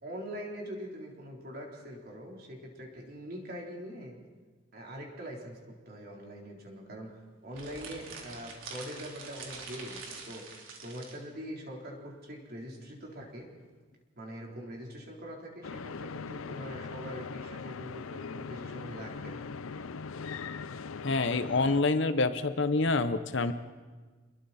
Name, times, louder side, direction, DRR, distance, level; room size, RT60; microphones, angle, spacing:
voice 1, 0.0-4.2 4.7-7.1 7.4-10.4 10.8-13.5 14.2-19.5, equal, 50° right, -1 dB, 3.8 m, -43 dB
sound 1, 7.5-11.2, right 4 dB, 75° right, 3.4 m, -45 dB
sound 2, 15.6-21.8, left 5 dB, 85° left, 0.6 m, -40 dB
voice 2, 21.0-23.5, left 3 dB, 60° left, 11 dB, 0.9 m, -27 dB
28.5 x 21.5 x 4.3 m, 1.4 s
head